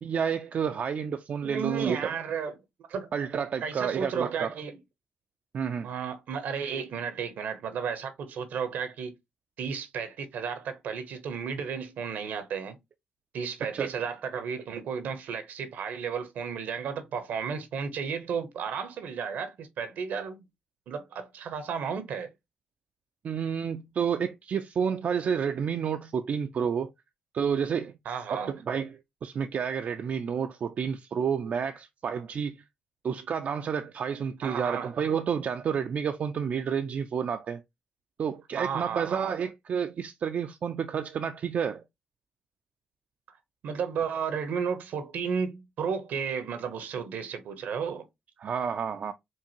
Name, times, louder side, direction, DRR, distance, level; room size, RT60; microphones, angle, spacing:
voice 1, 0.0-2.1 3.1-4.5 5.5-5.9 13.6-13.9 23.2-26.9 27.3-27.9 28.3-32.6 33.0-37.6 38.2-41.8 48.4-49.1, right 7 dB, 60° right, 0.4 m, -30 dB
voice 2, 1.4-2.6 2.9-3.1 3.6-4.8 5.8-9.1 9.6-12.8 13.3-20.5 20.9-22.3 28.0-28.5 34.4-34.9 38.5-39.3 43.6-48.1, right 6 dB, 80° right, 0.9 m, -33 dB
4.5 x 2.6 x 2.9 m
supercardioid pair, 60°, 3 cm